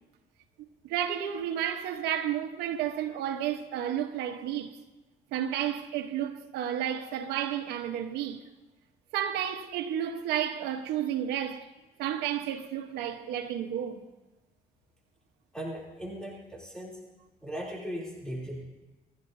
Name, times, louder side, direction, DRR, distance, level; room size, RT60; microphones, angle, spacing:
voice 1, 0.6-4.8 5.3-8.4 9.1-11.7 12.0-14.0, right 10 dB, 90° right, 1.1 m, -32 dB
voice 2, 15.5-17.0 17.4-18.6, equal, 5° left, 3.2 m, -38 dB
28.5 x 10.5 x 2.7 m
cardioid pair, 110°, 17 cm